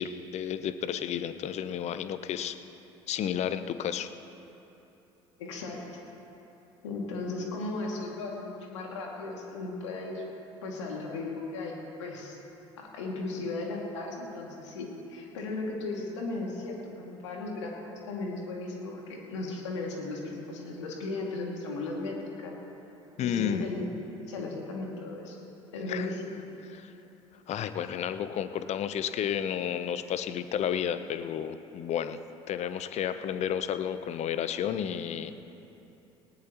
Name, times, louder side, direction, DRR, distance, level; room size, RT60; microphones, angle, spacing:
voice 1, 0.0-2.6 3.1-4.1 23.2-23.7 25.9-26.1 26.6-26.9 27.5-32.2 32.5-35.3, left 9 dB, 50° left, 11 dB, 0.8 m, -32 dB
voice 2, 5.4-5.9 6.8-10.2 10.6-12.4 12.8-22.6 23.2-23.9 24.3-25.4 25.7-26.3, left 3 dB, 80° left, -1 dB, 2.3 m, -36 dB
19.0 x 18.0 x 3.0 m, 3.0 s
hypercardioid pair, 60°, 15 cm